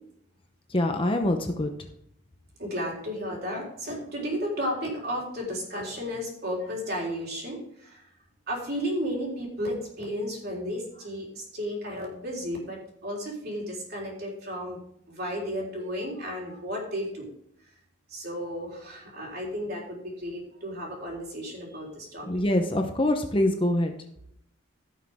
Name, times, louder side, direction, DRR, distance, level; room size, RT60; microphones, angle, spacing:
voice 1, 0.7-1.7 22.3-23.9, left 1 dB, 25° left, 5 dB, 0.9 m, -24 dB
voice 2, 2.6-8.0 8.5-14.8 15.1-17.3 18.1-22.7, equal, 50° right, -2 dB, 3.8 m, -33 dB
16.0 x 6.4 x 3.6 m, 0.72 s
head